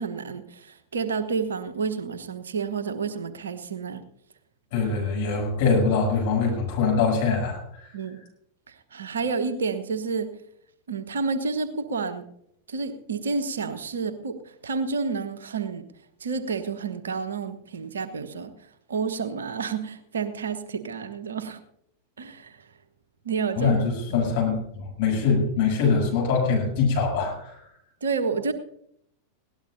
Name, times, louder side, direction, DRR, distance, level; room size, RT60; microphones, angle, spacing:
voice 1, 0.0-4.0 7.9-8.2 8.7-10.3 10.9-12.3 12.7-15.8 16.2-21.6 22.2-22.7 23.2-23.7 24.1-24.3 28.0-28.5, right 5 dB, 65° right, 10 dB, 1.1 m, -30 dB
voice 2, 4.7-7.9 23.6-27.7, left 5 dB, 50° left, -1 dB, 7.7 m, -23 dB
20.5 x 17.5 x 2.7 m, 0.74 s
figure-of-eight pair, 90°, 0 cm